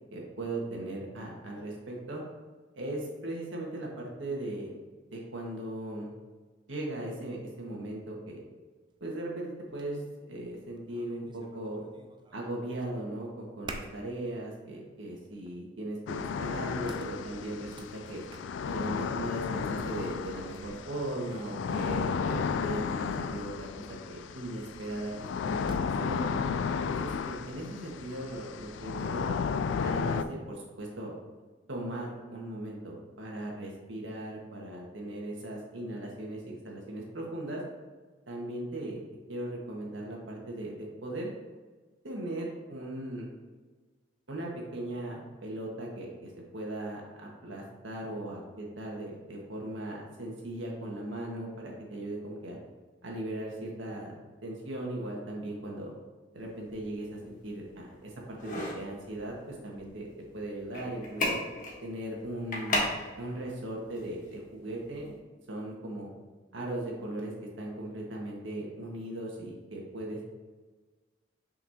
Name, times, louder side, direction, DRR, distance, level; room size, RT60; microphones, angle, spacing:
voice 1, 0.0-2.2 2.7-4.7 5.1-6.1 6.7-8.4 9.0-11.8 12.3-18.2 18.6-26.2 26.8-29.3 29.8-31.1 31.7-37.6 38.3-39.0 39.3-41.3 42.0-43.3 44.3-52.6 53.0-54.2 54.4-55.9 56.3-60.1 60.3-61.4 61.8-62.9 63.2-65.1 65.5-66.1 66.5-70.3, right 1 dB, 90° right, -2 dB, 1.6 m, -38 dB
sound 1, 8.9-9.0 9.7-9.9 10.3-12.5 12.8-13.2 13.6-14.1 14.6-14.7 15.2-15.6 16.4-16.5 16.9-18.5 19.9-22.8 25.0-26.1, right 2 dB, 25° right, 0.5 m, -49 dB
sound 2, 16.1-30.2, left 6 dB, 70° left, 0.3 m, -33 dB
sound 3, 56.3-65.2, left 1 dB, 45° left, 1.2 m, -38 dB
6.1 x 5.7 x 2.8 m, 1.3 s
head